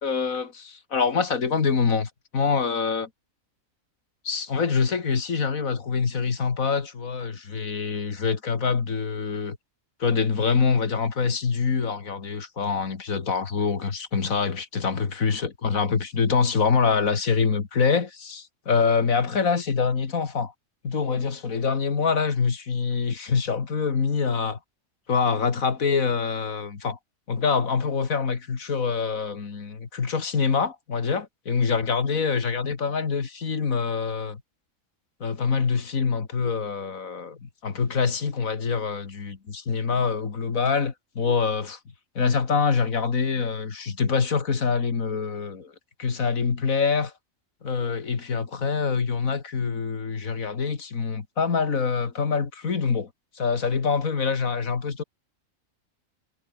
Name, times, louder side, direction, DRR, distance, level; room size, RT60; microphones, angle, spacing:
voice 1, 0.0-3.1 4.2-9.6 10.0-20.5 20.8-24.6 25.1-27.0 27.3-34.4 35.2-41.8 42.2-45.7 46.0-47.1 47.6-53.1 53.4-55.0, left 5 dB, 85° left, 2.4 m, -25 dB
omnidirectional pair, 1.4 m